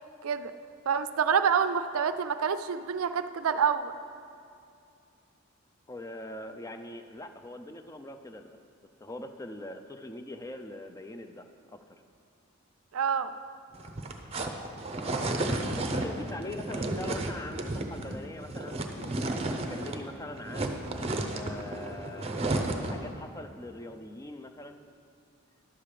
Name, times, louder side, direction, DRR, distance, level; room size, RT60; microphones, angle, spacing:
voice 1, 0.9-4.0 12.9-13.3, right 7 dB, 85° right, 11 dB, 0.4 m, -27 dB
voice 2, 5.9-8.6 9.0-12.0 15.0-20.8 21.3-22.6 22.9-24.8, left 1 dB, 15° left, 7 dB, 0.4 m, -42 dB
sound 1, 13.7-20.1 20.3-23.1, right 2 dB, 30° right, 0.6 m, -33 dB
11.0 x 7.3 x 4.9 m, 2.4 s
head